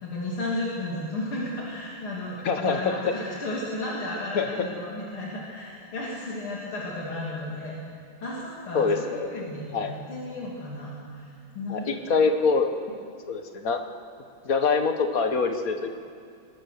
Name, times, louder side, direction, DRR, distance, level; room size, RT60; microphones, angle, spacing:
voice 1, 0.0-7.8 8.2-12.5, left 1 dB, 80° left, -5 dB, 3.7 m, -34 dB
voice 2, 2.4-2.8 4.3-4.5 8.7-9.3 9.7-9.9 11.7-12.7 13.3-13.8 14.4-16.0, left 4 dB, 45° left, 6 dB, 1.6 m, -24 dB
23.0 x 20.5 x 6.5 m, 2.4 s
omnidirectional pair, 2.3 m